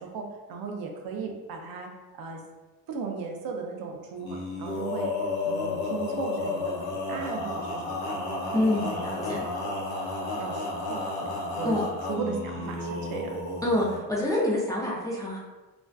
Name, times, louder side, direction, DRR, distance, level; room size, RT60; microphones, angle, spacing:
voice 1, 0.0-2.4 2.9-5.1 5.4-9.3 9.6-9.8 10.4-11.3 11.6-11.8 12.1-13.4, right 4 dB, 75° right, 2 dB, 0.5 m, -36 dB
Male singing, 4.2-14.0, left 2 dB, 80° left, 0.6 m, -32 dB
voice 2, 8.5-9.5 11.6-11.8 13.6-15.4, left 1 dB, 10° left, -6 dB, 0.3 m, -27 dB
2.4 x 2.3 x 2.2 m, 1.2 s
cardioid pair, 145°, 37 cm